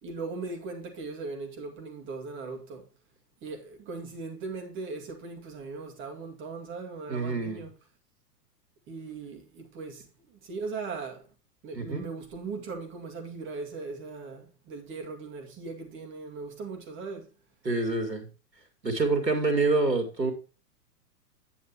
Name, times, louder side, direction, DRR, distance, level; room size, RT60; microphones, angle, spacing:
voice 1, 0.0-2.8 3.4-7.7 8.9-11.2 11.6-17.3, right 4 dB, 25° right, 2.2 m, -39 dB
voice 2, 7.1-7.6 11.7-12.1 17.6-18.3 18.8-20.3, right 3 dB, 85° right, 2.3 m, -26 dB
9.3 x 8.4 x 2.9 m
figure-of-eight pair, 105°, 49 cm